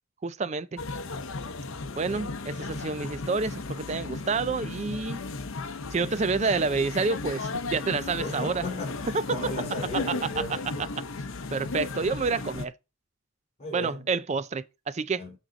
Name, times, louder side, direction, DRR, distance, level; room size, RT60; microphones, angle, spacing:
voice 1, 0.2-0.8 2.0-5.2 5.9-8.6 9.1-9.2 11.5-12.7 13.7-15.3, right 4 dB, 30° right, 0.4 m, -28 dB
sound 1, 0.8-12.7, left 3 dB, 70° left, 0.7 m, -35 dB
voice 2, 8.2-10.9 13.6-14.1 15.2-15.4, left 2 dB, 30° left, 3.4 m, -36 dB
7.4 x 5.4 x 3.9 m
head